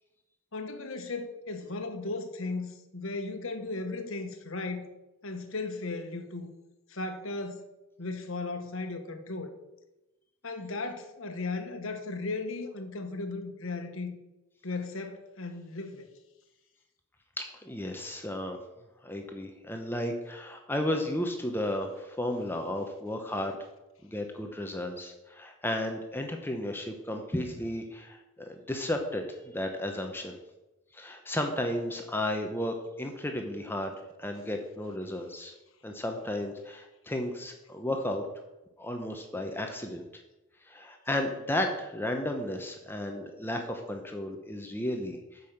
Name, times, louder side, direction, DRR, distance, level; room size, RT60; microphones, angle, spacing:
voice 1, 0.5-4.9 5.2-6.5 6.9-7.6 8.0-9.5 10.4-14.2 14.6-16.1, left 3 dB, 65° left, 1.2 m, -36 dB
voice 2, 17.4-18.6 19.0-23.6 24.0-30.4 30.9-35.5 35.8-38.3 38.8-40.0 40.7-45.4, left 1 dB, 10° left, 0.8 m, -33 dB
8.9 x 5.5 x 6.5 m
head